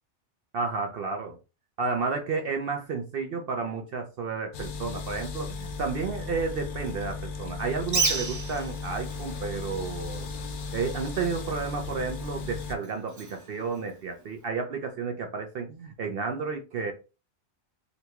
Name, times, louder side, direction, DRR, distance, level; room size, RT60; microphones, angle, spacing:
voice 1, 0.5-1.4 1.8-10.3 10.7-16.9, right 4 dB, 60° right, 0.7 m, -32 dB
sound 1, 4.5-12.8, left 4 dB, 60° left, 0.6 m, -36 dB
Bird, 7.8-14.5, right 4 dB, 25° right, 0.4 m, -35 dB
3.9 x 2.3 x 2.8 m
omnidirectional pair, 1.2 m